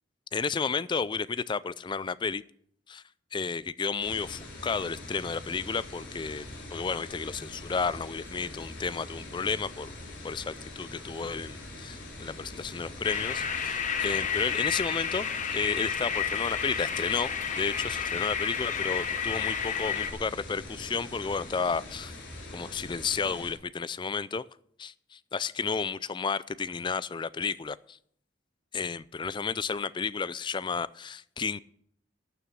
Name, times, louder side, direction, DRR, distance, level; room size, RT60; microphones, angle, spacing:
voice 1, 0.3-2.4 2.9-3.0 3.3-9.9 10.2-17.3 17.6-22.2 22.5-24.4 24.8-28.0 28.7-31.6, left 5 dB, 25° left, 0.4 m, -32 dB
sound 1, 4.0-23.5, left 2 dB, 90° left, 4.2 m, -43 dB
sound 2, 13.0-20.1, left 7 dB, 45° left, 1.0 m, -31 dB
12.5 x 6.9 x 7.6 m
head